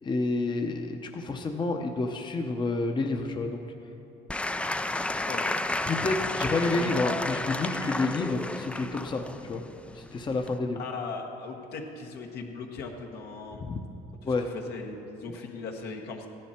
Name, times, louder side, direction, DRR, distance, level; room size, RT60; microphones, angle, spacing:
voice 1, 0.0-3.6 5.9-9.7 9.9-10.8 13.5-13.8 14.2-14.5, left 3 dB, 25° left, 4 dB, 0.8 m, -29 dB
Applause / Crowd, 4.3-10.6, left 2 dB, 5° left, 0.3 m, -32 dB
voice 2, 5.2-5.6 10.7-13.6 14.5-16.3, left 4 dB, 75° left, 2 dB, 1.4 m, -38 dB
15.0 x 10.5 x 4.4 m, 2.9 s
cardioid pair, 110°, 17 cm